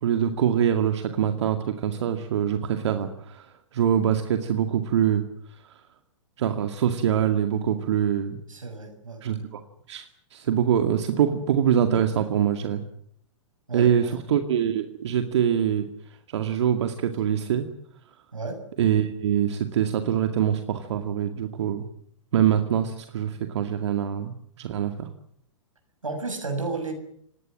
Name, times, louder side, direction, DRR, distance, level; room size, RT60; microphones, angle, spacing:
voice 1, 0.0-3.5 3.7-5.2 6.4-8.4 9.2-9.6 9.9-10.1 10.3-12.8 13.7-15.9 16.3-17.7 18.8-21.8 22.3-25.1, right 9 dB, 60° right, 7 dB, 2.1 m, -24 dB
voice 2, 8.5-9.2 13.7-14.1 18.3-18.6 26.0-26.9, right 3 dB, 85° right, 5 dB, 6.7 m, -32 dB
26.5 x 19.0 x 7.6 m, 0.68 s
figure-of-eight pair, 115°, 17 cm